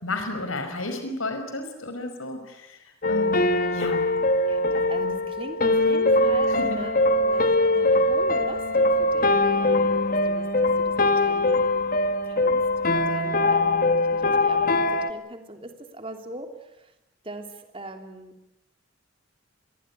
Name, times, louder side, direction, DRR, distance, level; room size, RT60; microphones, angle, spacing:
voice 1, 0.0-2.8 3.1-4.0 5.0-5.2 6.5-6.8, left 2 dB, 80° left, 7 dB, 5.3 m, -32 dB
sound 1, 3.0-15.1, left 2 dB, 40° left, 1.7 m, -22 dB
voice 2, 4.5-11.6 12.2-12.6 12.9-16.9 17.2-18.3, right 1 dB, 25° right, 5 dB, 3.1 m, -41 dB
27.5 x 21.0 x 9.8 m, 0.91 s
head